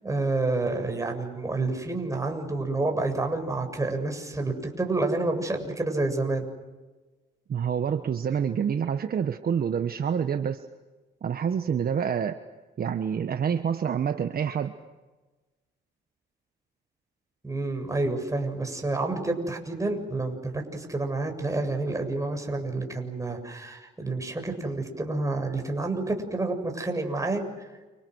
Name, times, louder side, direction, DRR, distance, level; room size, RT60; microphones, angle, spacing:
voice 1, 0.0-6.4 17.4-27.4, right 2 dB, 15° right, 4 dB, 7.4 m, -29 dB
voice 2, 7.5-10.6 11.2-12.4 12.8-14.7, right 7 dB, 50° right, 8 dB, 1.4 m, -27 dB
29.5 x 27.5 x 6.4 m, 1.2 s
cardioid pair, 90°, 20 cm